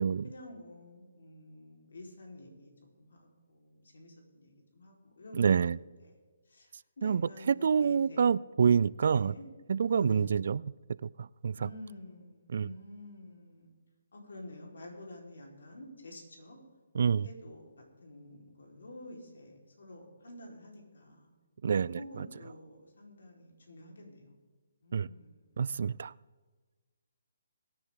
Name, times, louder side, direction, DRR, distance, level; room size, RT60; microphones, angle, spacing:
voice 1, 0.2-2.7 3.0-6.1 6.5-8.2 8.8-9.4 9.9-10.3 11.5-13.7 14.1-16.6 17.2-21.3 21.8-24.3 24.8-25.4, left 1 dB, 70° left, 0 dB, 4.3 m, -50 dB
voice 2, 5.3-5.8 7.0-7.2 7.5-9.3 9.7-10.6 11.0-11.6 12.5-12.7 16.9-17.3 21.6-22.0 24.9-25.1 25.6-26.1, right 6 dB, 60° right, 22 dB, 0.3 m, -27 dB
22.0 x 10.0 x 3.8 m, 1.4 s
figure-of-eight pair, 145°, 0 cm